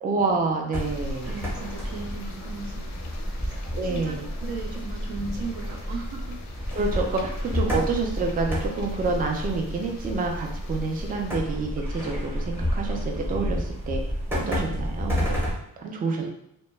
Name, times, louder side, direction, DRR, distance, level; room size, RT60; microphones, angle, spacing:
voice 1, 0.0-1.3 3.7-4.2 6.7-14.0 14.3-15.4 15.8-16.3, right 3 dB, 25° right, 1 dB, 0.3 m, -28 dB
sound 1, 0.7-11.3, left 4 dB, 50° left, 0.4 m, -46 dB
sound 2, 0.7-15.5, equal, 5° right, 0.7 m, -30 dB
voice 2, 1.3-3.1 3.3-6.4 14.4-14.7 15.3-15.5 15.8-16.3, right 4 dB, 85° right, 2 dB, 0.6 m, -37 dB
2.1 x 2.0 x 3.1 m, 0.78 s
cardioid pair, 115°, 36 cm